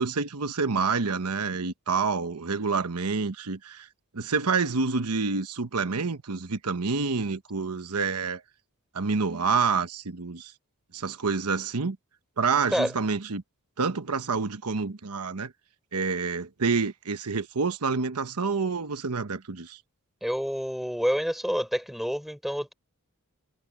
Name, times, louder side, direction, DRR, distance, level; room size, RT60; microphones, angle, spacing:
voice 1, 0.0-3.9 4.1-8.4 8.9-10.5 10.9-12.0 12.4-13.4 13.8-15.5 15.9-19.8, right 4 dB, 90° right, 1.1 m, -28 dB
voice 2, 20.2-22.7, equal, ahead, 4.2 m, -28 dB
head